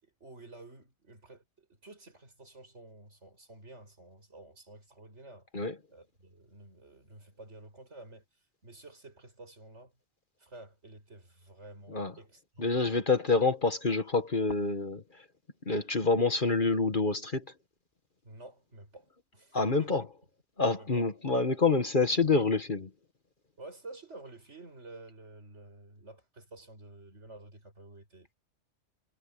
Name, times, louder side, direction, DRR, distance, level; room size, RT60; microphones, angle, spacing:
voice 1, 0.0-5.5 5.9-8.2 8.6-9.9 10.4-13.0 18.2-20.1 20.7-21.0 23.6-28.4, right 2 dB, 65° right, 6.7 m, -51 dB
voice 2, 12.6-15.0 15.7-17.4 19.5-20.0 20.6-22.9, left 3 dB, 45° left, 1.7 m, -27 dB
omnidirectional pair, 1.3 m